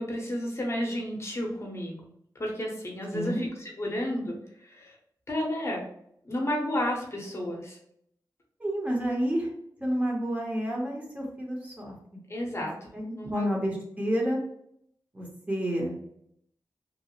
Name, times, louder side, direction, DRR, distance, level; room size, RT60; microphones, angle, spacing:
voice 1, 0.0-2.1 2.4-5.0 5.3-5.8 6.2-7.8 12.3-12.9 13.1-13.5, left 1 dB, 35° left, -2 dB, 0.7 m, -32 dB
voice 2, 3.1-3.4 8.6-9.5 9.8-11.9 12.5-12.7 12.9-14.4 15.1-15.9, equal, 20° right, -2 dB, 0.9 m, -29 dB
2.9 x 2.0 x 2.9 m, 0.71 s
wide cardioid pair, 85°, 8 cm